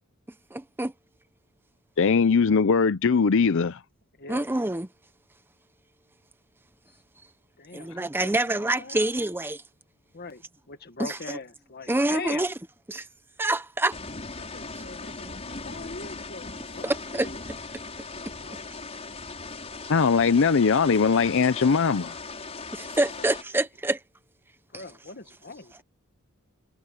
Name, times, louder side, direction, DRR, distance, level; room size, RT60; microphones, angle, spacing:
voice 1, 0.5-0.9 4.3-4.9 7.7-9.6 11.0-11.4 11.9-12.5 12.9-13.1 13.4-14.0 16.8-17.3 22.7-24.0, right 2 dB, 10° right, 0.7 m, -26 dB
voice 2, 2.0-3.8 19.9-22.2, left 5 dB, 60° left, 0.5 m, -20 dB
voice 3, 4.2-4.5 7.6-9.1 10.1-10.4 10.7-12.5 14.4-17.4 18.4-18.6 22.8-23.3 24.7-25.8, left 3 dB, 45° left, 1.6 m, -41 dB
sound 1, 13.9-23.4, left 3 dB, 30° left, 5.6 m, -39 dB
head